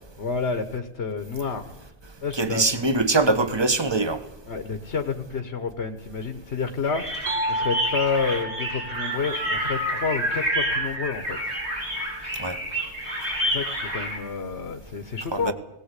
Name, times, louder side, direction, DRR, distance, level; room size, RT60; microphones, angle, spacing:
voice 1, 0.2-1.7 2.2-2.6 4.5-11.5 13.5-15.5, left 5 dB, 70° left, 1.6 m, -29 dB
voice 2, 2.4-4.2 12.4-12.6 15.3-15.5, right 2 dB, 25° right, 1.3 m, -22 dB
sound 1, 6.8-14.2, right 1 dB, 75° right, 5.3 m, -29 dB
sound 2, 7.3-10.9, right 1 dB, 60° right, 4.4 m, -33 dB
19.0 x 18.5 x 8.3 m
omnidirectional pair, 1.2 m